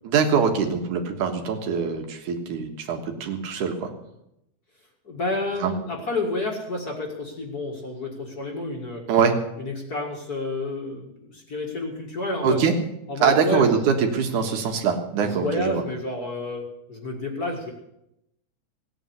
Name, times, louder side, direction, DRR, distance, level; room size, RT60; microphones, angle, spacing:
voice 1, 0.0-3.9 5.6-5.7 9.1-9.4 12.4-12.7 13.2-15.8, right 6 dB, 80° right, 5 dB, 3.1 m, -23 dB
voice 2, 5.0-9.1 9.6-12.6 13.1-14.2 15.2-17.7, left 2 dB, 35° left, 1 dB, 2.1 m, -30 dB
16.5 x 9.1 x 8.2 m, 0.83 s
omnidirectional pair, 3.5 m